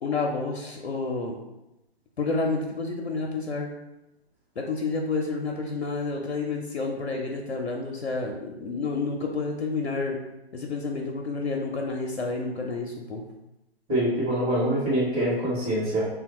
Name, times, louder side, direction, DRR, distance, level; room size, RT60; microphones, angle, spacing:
voice 1, 0.0-1.4 2.2-3.7 4.6-10.2 10.5-13.2, left 3 dB, 90° left, 1 dB, 0.6 m, -29 dB
voice 2, 13.9-16.0, right 1 dB, 15° right, -12 dB, 1.0 m, -24 dB
3.3 x 2.1 x 2.9 m, 0.92 s
figure-of-eight pair, 130°, 32 cm